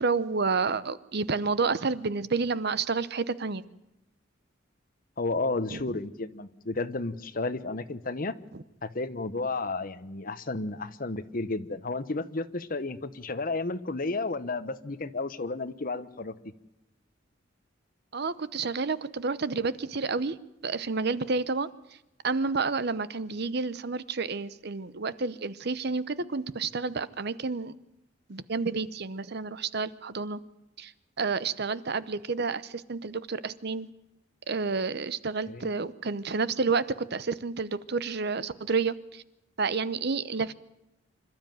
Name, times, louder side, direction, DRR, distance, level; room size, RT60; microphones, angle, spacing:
voice 1, 0.0-3.6 5.7-5.8 8.5-8.6 18.1-20.4 20.6-21.7 22.2-27.7 28.3-30.4 30.8-30.9 31.2-33.9 34.5-39.2 39.6-40.5, right 4 dB, 60° right, 16 dB, 0.8 m, -30 dB
voice 2, 5.2-8.3 8.8-16.3 35.5-35.7, left 3 dB, 50° left, 11 dB, 1.1 m, -32 dB
26.5 x 12.5 x 9.2 m, 0.92 s
head